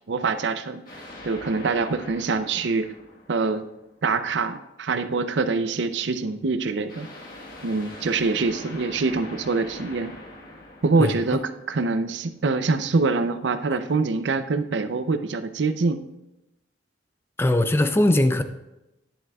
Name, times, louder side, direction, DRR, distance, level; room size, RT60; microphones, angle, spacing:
voice 1, 0.1-0.8 1.2-2.9 3.3-3.6 4.0-7.1 7.6-10.1 10.8-11.4 11.7-16.0, right 4 dB, 75° right, 0.5 m, -24 dB
sound 1, 0.9-4.0 6.9-12.1, left 1 dB, 50° left, 1.4 m, -42 dB
voice 2, 17.4-18.4, left 1 dB, 15° left, 0.4 m, -20 dB
11.0 x 10.0 x 2.3 m
head